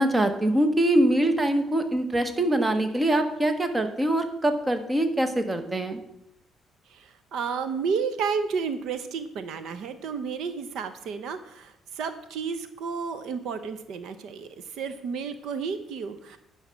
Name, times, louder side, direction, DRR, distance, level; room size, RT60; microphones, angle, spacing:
voice 1, 0.0-6.0, right 1 dB, 15° right, 7 dB, 1.1 m, -23 dB
voice 2, 6.9-16.4, right 5 dB, 70° right, 10 dB, 0.8 m, -32 dB
10.5 x 5.7 x 6.3 m, 0.81 s
cardioid pair, 130°, 0 cm